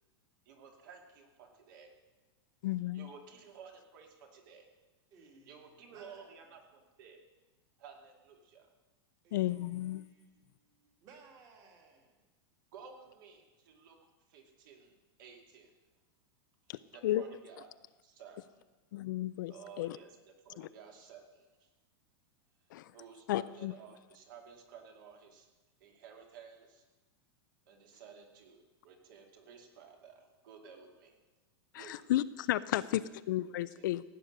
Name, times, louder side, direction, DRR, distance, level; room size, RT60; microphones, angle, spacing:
voice 1, 0.5-1.9 2.9-4.7 5.5-7.2 7.8-8.7 12.7-14.0 14.3-15.7 16.7-17.7 18.0-18.6 19.5-21.7 22.9-25.5 25.8-26.8 27.7-31.2 31.7-32.1 32.7-33.1 33.5-33.9, right 6 dB, 55° right, 3 dB, 2.4 m, -54 dB
voice 2, 2.6-3.1 9.3-10.0 16.7-17.2 18.9-20.0 20.6-20.7 22.7-22.9 23.3-23.7 31.7-33.0 33.3-34.0, left 14 dB, 50° left, 15 dB, 0.4 m, -33 dB
voice 3, 5.1-6.4 9.2-10.2 10.7-12.2, right 4 dB, 25° right, 2 dB, 2.1 m, -60 dB
16.0 x 9.0 x 6.5 m, 1.1 s
supercardioid pair, 180°, 13 cm